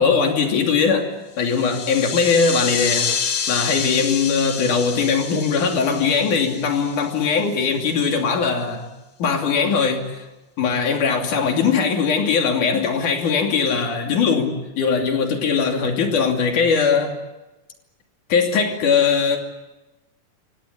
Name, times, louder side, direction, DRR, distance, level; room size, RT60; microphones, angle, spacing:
voice 1, 0.0-3.1 3.5-8.9 9.2-10.2 10.6-17.1 18.3-19.4, left 5 dB, 75° left, 3 dB, 4.3 m, -20 dB
sound 1, 1.4-7.4, left 6 dB, 45° left, 2.1 m, -28 dB
28.5 x 17.5 x 9.8 m, 1.1 s
omnidirectional pair, 3.6 m